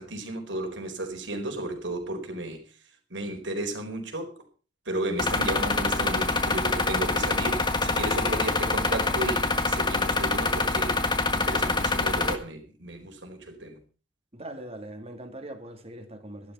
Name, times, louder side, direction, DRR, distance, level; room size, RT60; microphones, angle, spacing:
voice 1, 0.0-2.6 3.1-4.3 4.8-11.0 11.3-13.8, right 1 dB, 70° right, 4.5 m, -33 dB
sound 1, 5.2-12.3, left 3 dB, 25° left, 1.6 m, -25 dB
voice 2, 7.1-7.4 8.2-8.7 14.3-16.5, right 1 dB, 35° right, 2.6 m, -41 dB
13.5 x 12.0 x 5.6 m
head